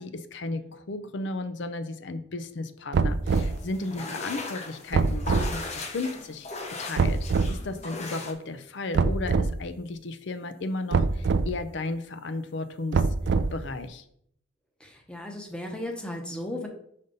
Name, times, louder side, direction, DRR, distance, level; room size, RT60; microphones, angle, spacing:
voice 1, 0.0-6.5 6.8-13.1 13.5-14.0, left 2 dB, 60° left, 10 dB, 0.5 m, -34 dB
sound 1, 2.9-3.6 4.9-5.5 7.0-7.5 8.9-9.5 10.9-11.5 12.9-13.7, right 4 dB, 60° right, 0.3 m, -24 dB
sound 2, 3.3-8.3, left 3 dB, 35° left, 0.8 m, -38 dB
voice 2, 14.8-16.7, left 1 dB, 5° left, 1 dB, 0.9 m, -36 dB
5.2 x 4.0 x 5.2 m, 0.70 s
head